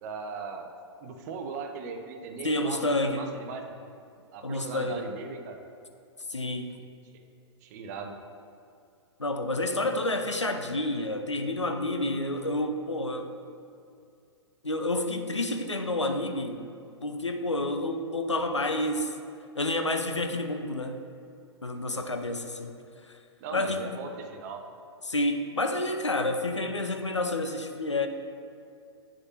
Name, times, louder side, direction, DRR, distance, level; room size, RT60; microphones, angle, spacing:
voice 1, 0.0-0.8 1.0-3.7 4.3-5.6 6.8-6.9 7.6-8.2 21.9-22.0 23.4-24.6, right 5 dB, 35° right, 5 dB, 0.7 m, -39 dB
voice 2, 2.4-3.3 4.4-5.1 6.3-6.7 9.2-13.3 14.6-16.7 17.0-19.1 19.5-21.0 21.6-22.7 23.1-23.2 23.5-23.9 25.0-28.1, left 1 dB, 85° left, 6 dB, 0.6 m, -29 dB
8.8 x 6.4 x 2.9 m, 2.4 s
figure-of-eight pair, 110°, 15 cm